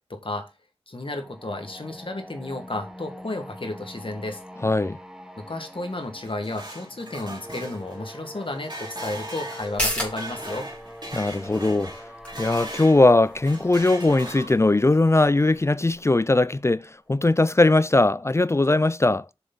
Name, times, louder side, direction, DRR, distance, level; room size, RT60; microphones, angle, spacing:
voice 1, 0.1-0.5 0.9-4.4 5.4-10.7, left 2 dB, 60° left, 1.7 m, -33 dB
sound 1, 1.0-16.8, equal, 5° right, 1.3 m, -44 dB
voice 2, 4.6-5.0 11.1-11.9 12.4-19.3, left 2 dB, 30° left, 0.3 m, -20 dB
sound 2, 6.0-13.0 13.4-14.8, right 1 dB, 50° right, 2.7 m, -39 dB
sound 3, 9.6-16.7 17.1-17.2, equal, 10° left, 3.2 m, -36 dB
7.0 x 6.9 x 4.0 m
wide cardioid pair, 55°, 10 cm